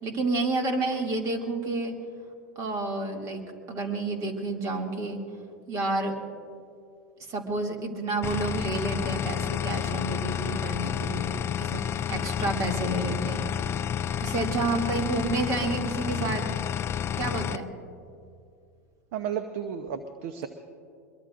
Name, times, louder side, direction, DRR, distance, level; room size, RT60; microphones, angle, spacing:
voice 1, 0.0-1.9 2.6-5.2 5.7-6.2 7.3-13.5 14.2-16.4 17.2-17.7, right 2 dB, 40° right, 2 dB, 2.6 m, -30 dB
sound 1, 8.2-17.6, left 9 dB, 30° left, 0.5 m, -30 dB
voice 2, 19.1-20.5, right 8 dB, 65° right, 9 dB, 0.9 m, -33 dB
23.5 x 22.5 x 2.6 m, 2.4 s
hypercardioid pair, 95°, 8 cm